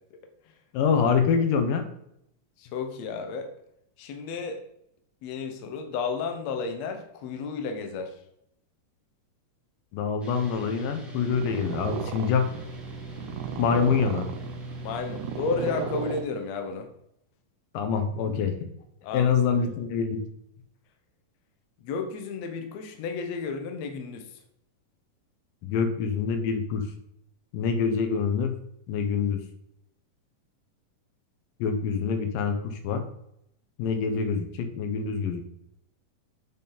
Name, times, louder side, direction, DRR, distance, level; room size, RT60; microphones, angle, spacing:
voice 1, 0.7-1.8 9.9-12.5 13.6-14.2 17.7-18.5 19.1-20.2 25.6-26.8 27.5-28.5 28.9-29.4 31.6-33.0 33.8-35.4, left 6 dB, 85° left, 7 dB, 2.6 m, -25 dB
voice 2, 2.6-3.5 4.0-4.6 5.2-8.2 13.7-13.8 14.8-16.9 19.0-19.7 21.8-24.4, left 5 dB, 65° left, 5 dB, 2.0 m, -32 dB
sound 1, 10.2-16.2, right 1 dB, ahead, 0.9 m, -41 dB
Purr, 11.0-16.7, right 9 dB, 75° right, 2.0 m, -36 dB
8.2 x 7.3 x 4.0 m, 0.76 s
omnidirectional pair, 3.8 m